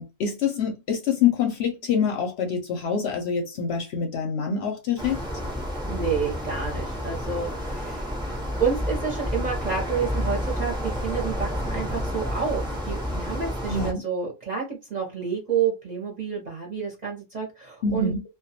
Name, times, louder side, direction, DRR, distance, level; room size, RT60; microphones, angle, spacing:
voice 1, 0.0-5.2 13.7-14.0 17.8-18.2, left 6 dB, 65° left, 0.7 m, -25 dB
sound 1, 5.0-13.9, equal, 5° right, 0.3 m, -30 dB
voice 2, 5.9-8.1 8.6-18.1, right 6 dB, 45° right, 0.6 m, -29 dB
2.2 x 2.2 x 2.7 m
omnidirectional pair, 1.4 m